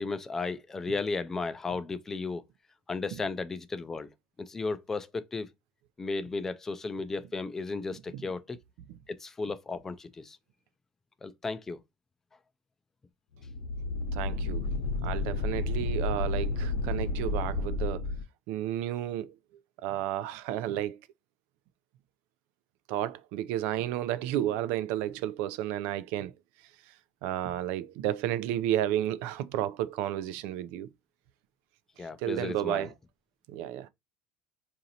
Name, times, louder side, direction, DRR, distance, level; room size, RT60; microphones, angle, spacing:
voice 1, 0.0-2.4 2.9-4.1 4.4-5.5 6.0-8.6 9.1-10.4 11.2-11.8 32.0-32.9, left 3 dB, 15° left, 0.3 m, -34 dB
sound 1, 13.4-18.2, left 3 dB, 90° left, 0.8 m, -31 dB
voice 2, 14.1-14.7 15.0-18.0 18.5-19.3 19.8-21.0 22.9-26.3 27.2-30.9 32.2-32.9 33.5-33.9, right 12 dB, 65° right, 0.4 m, -32 dB
4.9 x 2.7 x 2.7 m
cardioid pair, 160°, 3 cm